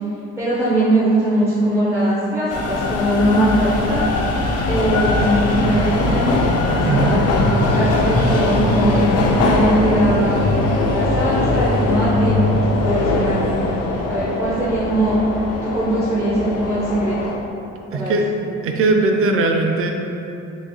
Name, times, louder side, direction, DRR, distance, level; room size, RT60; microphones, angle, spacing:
voice 1, 0.4-4.1 4.7-6.4 6.9-9.0 9.4-10.5 10.9-12.5 12.7-13.8 14.1-15.1 15.6-17.2 17.9-18.2, right 1 dB, 10° right, -10 dB, 0.7 m, -20 dB
sound 1, 2.5-17.4, left 2 dB, 55° left, 0.5 m, -20 dB
voice 2, 17.9-18.2 18.6-19.9, right 3 dB, 50° right, 2 dB, 0.4 m, -18 dB
3.5 x 3.1 x 2.3 m, 2.7 s
cardioid pair, 90°, 30 cm